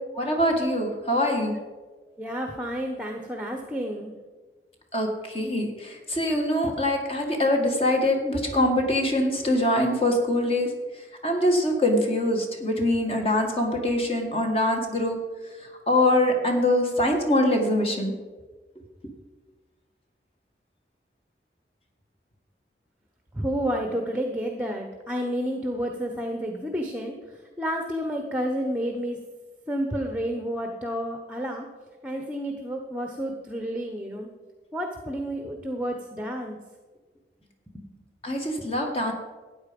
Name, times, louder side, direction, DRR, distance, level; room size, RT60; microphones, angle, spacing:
voice 1, 0.1-1.6 4.9-10.7 11.2-15.2 15.9-18.1 38.2-39.1, left 1 dB, 30° left, 2 dB, 1.8 m, -23 dB
voice 2, 2.2-4.1 23.3-27.1 27.6-29.2 29.7-31.7 32.0-34.3 34.7-36.6 37.7-37.9, equal, 5° right, 3 dB, 0.9 m, -30 dB
13.5 x 9.1 x 5.3 m, 1.3 s
head